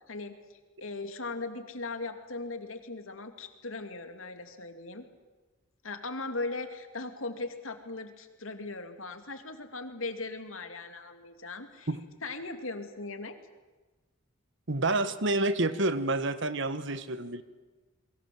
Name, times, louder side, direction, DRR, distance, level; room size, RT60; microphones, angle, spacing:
voice 1, 0.8-5.0 5.8-11.9 12.2-13.4, left 3 dB, 80° left, 7 dB, 2.6 m, -38 dB
voice 2, 14.7-17.4, right 2 dB, 60° right, 12 dB, 1.5 m, -28 dB
29.0 x 22.5 x 7.8 m, 1.2 s
head